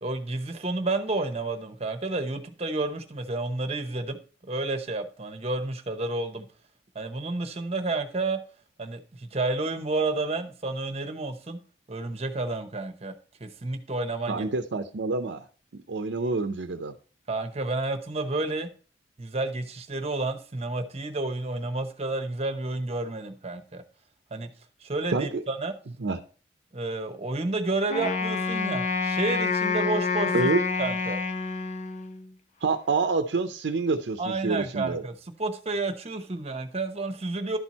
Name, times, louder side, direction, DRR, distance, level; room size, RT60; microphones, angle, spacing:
voice 1, 0.0-4.2 4.5-6.5 6.9-8.4 8.8-11.6 11.9-13.1 13.4-14.4 17.3-18.7 19.2-23.8 24.3-24.5 24.8-25.7 26.7-30.5 30.8-31.2 34.2-37.6, right 2 dB, 35° right, 0.9 m, -30 dB
voice 2, 14.3-15.4 15.7-17.0 25.1-25.4 26.0-26.2 30.3-30.6 32.6-35.0, right 3 dB, 85° right, 0.6 m, -27 dB
Wind instrument woodwind instrument, 27.9-32.3, left 4 dB, 40° left, 0.7 m, -28 dB
11.5 x 4.5 x 4.1 m
head